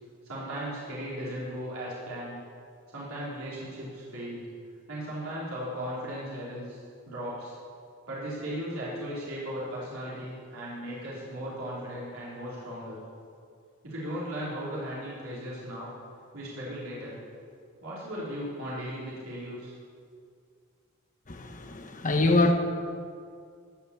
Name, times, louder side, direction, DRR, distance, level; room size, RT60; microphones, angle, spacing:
voice 1, 0.2-2.4 2.9-4.4 4.9-6.8 7.0-7.6 8.1-13.0 13.8-15.9 16.3-17.1 17.8-19.7, equal, 85° right, -8 dB, 3.6 m, -37 dB
voice 2, 21.3-22.5, left 2 dB, 40° left, 4 dB, 1.2 m, -24 dB
14.5 x 5.9 x 8.4 m, 2.3 s
head